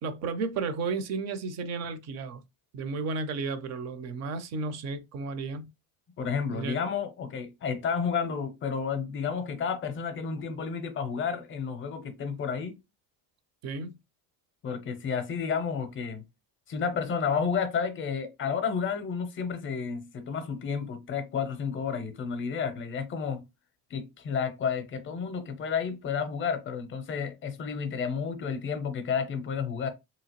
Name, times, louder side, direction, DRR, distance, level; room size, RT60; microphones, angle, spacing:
voice 1, 0.0-2.4 2.7-5.7 6.5-6.8 13.6-13.9, right 4 dB, 40° right, 0.4 m, -33 dB
voice 2, 6.2-12.8 14.6-16.2 16.7-23.4 23.9-29.9, left 6 dB, 30° left, 0.6 m, -31 dB
2.9 x 2.9 x 2.9 m
cardioid pair, 155°, 43 cm